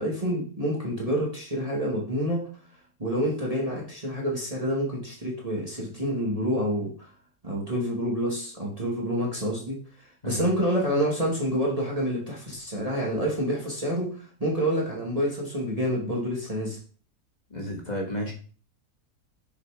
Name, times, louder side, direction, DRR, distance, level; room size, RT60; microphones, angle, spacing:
voice 1, 0.0-2.4 3.0-7.1 7.4-16.8, equal, 25° right, -3 dB, 2.0 m, -28 dB
voice 2, 17.5-18.3, left 1 dB, 30° left, 0 dB, 1.5 m, -32 dB
6.8 x 4.8 x 4.8 m, 0.41 s
omnidirectional pair, 1.7 m